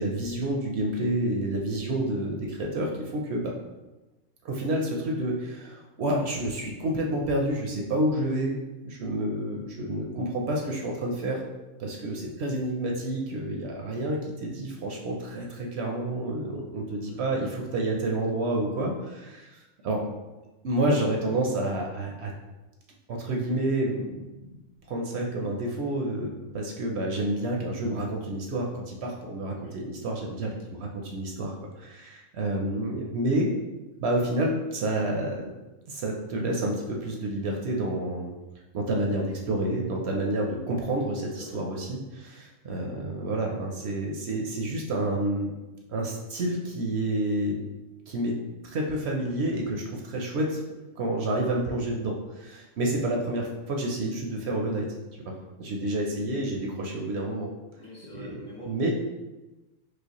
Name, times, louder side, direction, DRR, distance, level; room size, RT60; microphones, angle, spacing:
voice 1, 0.0-3.5 4.4-8.5 8.8-11.4 11.8-20.1 20.6-22.3 23.1-24.2 24.9-30.5 30.8-33.5 34.0-35.5 35.9-38.3 38.7-45.5 45.9-47.6 48.1-48.3 48.6-50.6 51.0-54.9 55.6-57.5 58.1-58.2 58.6-58.9, right 1 dB, 65° right, 0 dB, 0.7 m, -29 dB
voice 2, 57.7-58.9, left 1 dB, 80° left, -10 dB, 2.1 m, -45 dB
4.9 x 2.1 x 2.9 m, 1.1 s
omnidirectional pair, 1.4 m